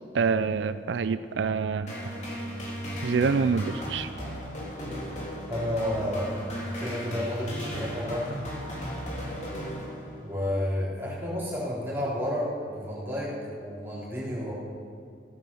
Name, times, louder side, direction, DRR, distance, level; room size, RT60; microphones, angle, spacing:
voice 1, 0.1-1.9 3.0-4.1, right 5 dB, 80° right, 13 dB, 0.4 m, -26 dB
sound 1, 1.9-10.4, equal, 40° left, 3.4 m, -35 dB
voice 2, 5.5-6.3 6.8-8.5 10.2-14.5, left 1 dB, 10° right, -7 dB, 3.9 m, -31 dB
15.0 x 9.4 x 7.1 m, 2.3 s
head